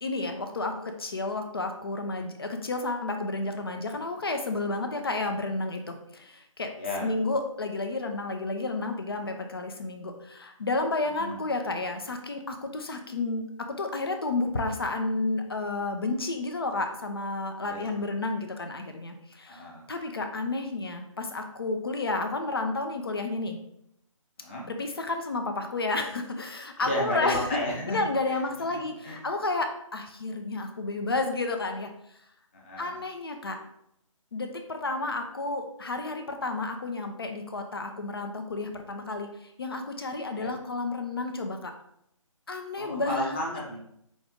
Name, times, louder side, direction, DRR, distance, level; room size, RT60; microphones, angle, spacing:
voice 1, 0.0-6.7 7.0-13.4 13.8-23.6 24.7-27.5 27.9-29.7 29.9-31.9 32.8-33.6 34.3-41.7 42.5-43.6, left 2 dB, 45° left, 5 dB, 0.5 m, -31 dB
voice 2, 6.8-7.1 11.2-11.4 17.6-17.8 19.5-19.8 24.4-24.6 26.8-28.4 28.7-28.8 29.0-29.2 32.5-33.0 40.3-40.5 42.8-43.8, left 1 dB, 20° left, -3 dB, 0.9 m, -33 dB
5.0 x 2.5 x 3.6 m, 0.74 s
figure-of-eight pair, 150°, 18 cm